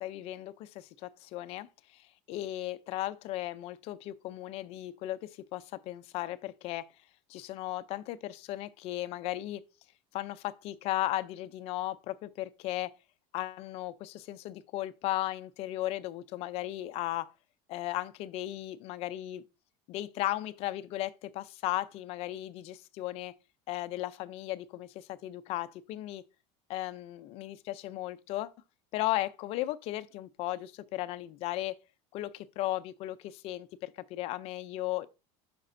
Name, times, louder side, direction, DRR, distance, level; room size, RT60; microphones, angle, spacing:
voice 1, 0.0-6.8 7.3-9.6 10.1-12.9 13.3-17.3 17.7-19.4 19.9-23.3 23.7-26.2 26.7-28.5 28.9-31.8 32.1-35.1, left 15 dB, 40° left, 0.5 m, -36 dB
8.4 x 6.0 x 2.6 m
cardioid pair, 170°, 16 cm